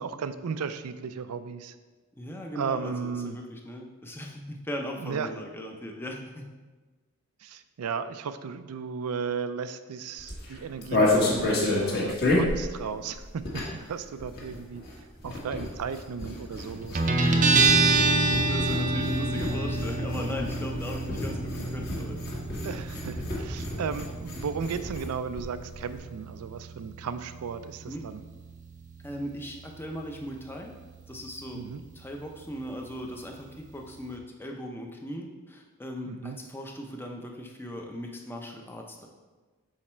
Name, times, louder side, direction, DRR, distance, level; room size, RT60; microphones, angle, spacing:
voice 1, 0.0-1.7 2.5-3.4 5.0-5.3 7.4-14.8 15.2-17.6 22.6-28.2 31.5-31.8 36.1-36.4, right 6 dB, 90° right, 12 dB, 0.4 m, -35 dB
voice 2, 2.2-6.5 15.2-15.4 18.1-22.2 27.9-28.0 29.0-30.7 31.1-39.1, equal, 10° left, 2 dB, 0.5 m, -38 dB
sound 1, 10.2-13.9 14.2-25.1 25.4-25.5 25.7-26.0, left 2 dB, 45° left, 1.4 m, -30 dB
Guitar, 17.0-34.2, right 3 dB, 35° right, 0.5 m, -29 dB
6.4 x 4.1 x 4.3 m, 1.3 s
head